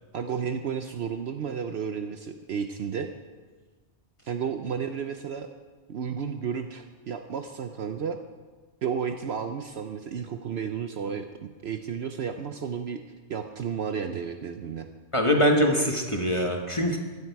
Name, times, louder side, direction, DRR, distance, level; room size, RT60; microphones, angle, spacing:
voice 1, 0.1-3.1 4.3-5.5 5.9-8.2 8.8-13.0 13.3-14.9, right 7 dB, 60° right, 7 dB, 0.9 m, -32 dB
voice 2, 15.1-17.0, equal, 25° left, 1 dB, 1.3 m, -23 dB
15.5 x 13.0 x 4.7 m, 1.4 s
omnidirectional pair, 1.3 m